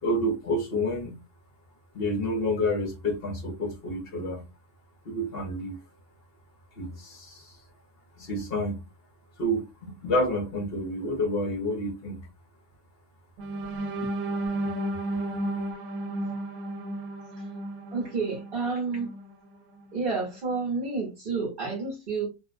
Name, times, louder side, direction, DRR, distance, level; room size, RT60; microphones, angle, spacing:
voice 1, 0.0-1.1 1.9-4.4 5.0-5.8 6.7-7.6 8.1-8.8 9.4-12.3, left 1 dB, 50° left, 0.9 m, -29 dB
sound 1, 13.4-19.3 19.8-20.0 20.3-20.6, right 1 dB, 80° right, 1.1 m, -33 dB
voice 2, 17.9-19.1 19.9-22.3, right 4 dB, 40° right, 0.9 m, -30 dB
2.6 x 2.1 x 2.3 m
omnidirectional pair, 1.5 m